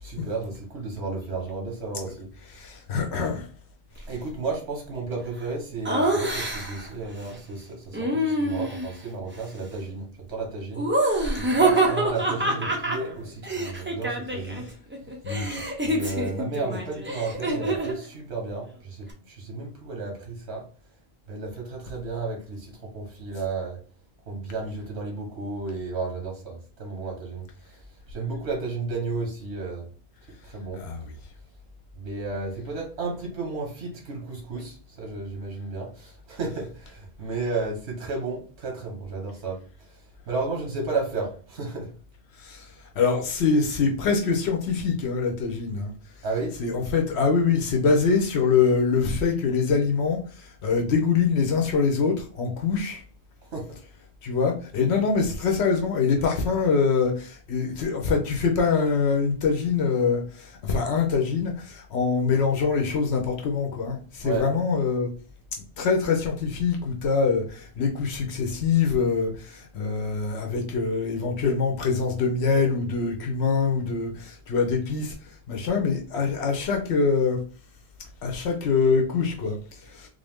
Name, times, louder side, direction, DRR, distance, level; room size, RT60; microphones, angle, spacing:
voice 1, 0.0-2.3 4.1-10.9 11.3-14.7 15.8-20.6 21.3-23.8 24.3-27.4 27.7-27.8 28.1-29.9 30.4-30.8 31.9-39.6 40.3-41.9 46.2-46.6 53.5-53.7 64.2-64.5, right 3 dB, 75° right, 1.3 m, -33 dB
voice 2, 2.5-3.5 15.2-15.6 30.7-31.1 42.4-45.9 46.6-53.0 54.2-65.1 65.8-75.1 75.5-77.4 78.2-80.1, left 5 dB, 75° left, 0.9 m, -24 dB
Laughter, 5.8-6.9 7.9-9.0 10.7-14.6 14.9-18.0, right 1 dB, 15° right, 0.5 m, -26 dB
3.5 x 2.6 x 3.4 m
omnidirectional pair, 1.1 m